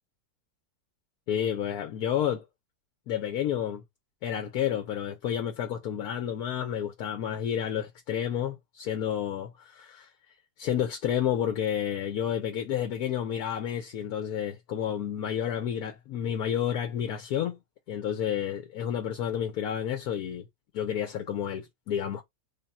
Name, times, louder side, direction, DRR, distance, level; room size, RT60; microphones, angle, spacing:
voice 1, 1.3-2.4 3.1-3.8 4.2-10.1 10.6-17.6 17.9-20.4 20.7-22.2, left 9 dB, 70° left, 1.1 m, -30 dB
3.7 x 2.2 x 4.1 m
omnidirectional pair, 1.8 m